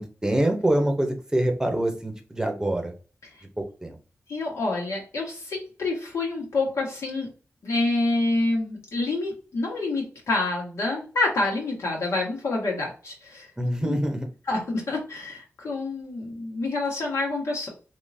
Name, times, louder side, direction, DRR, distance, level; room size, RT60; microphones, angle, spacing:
voice 1, 0.0-2.9 3.6-4.0 13.6-14.3, right 1 dB, 15° right, 3 dB, 0.8 m, -25 dB
voice 2, 4.3-7.3 7.6-13.5 13.8-14.0 14.5-17.7, left 2 dB, 85° left, -2 dB, 1.6 m, -27 dB
3.7 x 2.9 x 2.7 m, 0.36 s
wide cardioid pair, 90°, 5 cm